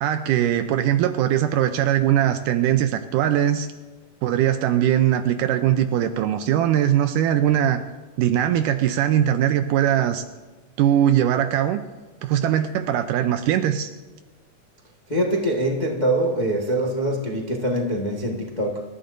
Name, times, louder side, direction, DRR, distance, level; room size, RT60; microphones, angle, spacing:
voice 1, 0.0-3.7 4.2-7.8 8.2-10.2 10.8-11.8 12.2-13.9, right 11 dB, 80° right, 8 dB, 2.2 m, -21 dB
voice 2, 15.1-18.8, right 1 dB, 90° left, 0 dB, 0.4 m, -24 dB
26.5 x 14.0 x 2.6 m, 1.3 s
omnidirectional pair, 3.8 m